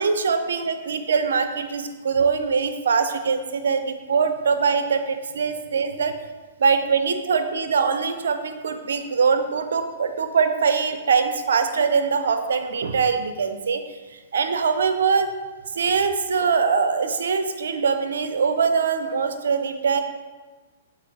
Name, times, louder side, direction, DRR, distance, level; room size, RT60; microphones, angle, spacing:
voice 1, 0.0-6.1 6.6-13.8 14.3-15.3 15.8-20.0, right 5 dB, 80° right, 8 dB, 0.6 m, -22 dB
6.6 x 4.7 x 3.3 m, 1.3 s
hypercardioid pair, 130°, 0 cm